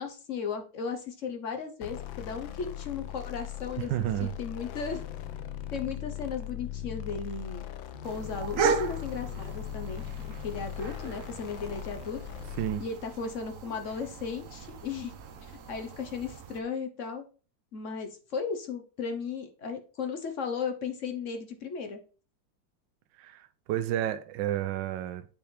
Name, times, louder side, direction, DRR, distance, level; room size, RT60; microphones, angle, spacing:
voice 1, 0.0-5.0 5.7-7.6 8.0-10.0 10.4-12.2 12.8-15.1 15.7-17.2 17.7-22.0, left 5 dB, 50° left, 1.0 m, -35 dB
sound 1, 1.8-12.9, left 13 dB, 85° left, 1.4 m, -39 dB
voice 2, 3.9-4.3 12.6-12.9 23.2-25.3, right 12 dB, 75° right, 1.2 m, -31 dB
sound 2, 4.6-11.5, left 2 dB, 40° right, 1.4 m, -52 dB
sound 3, 8.0-16.6, right 6 dB, 60° right, 0.9 m, -36 dB
8.8 x 3.4 x 4.3 m
omnidirectional pair, 2.1 m